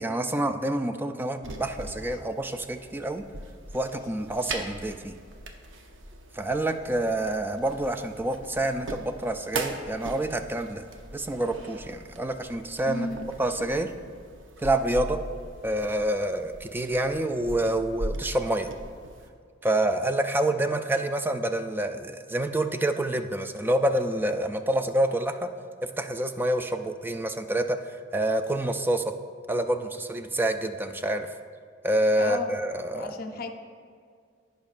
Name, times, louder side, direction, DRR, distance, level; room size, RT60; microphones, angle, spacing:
voice 1, 0.0-3.2 3.7-5.1 6.3-10.8 11.1-13.1 13.4-13.9 14.6-15.2 15.6-18.7 19.6-25.5 25.8-29.0 29.5-31.3 31.8-33.1, right 1 dB, 10° right, 8 dB, 0.3 m, -27 dB
sound 1, 1.4-19.3, right 2 dB, 75° right, 0.7 m, -40 dB
voice 2, 12.9-13.2 32.2-32.5 32.9-33.5, left 2 dB, 50° left, 5 dB, 0.6 m, -33 dB
15.5 x 5.2 x 2.4 m, 2.1 s
head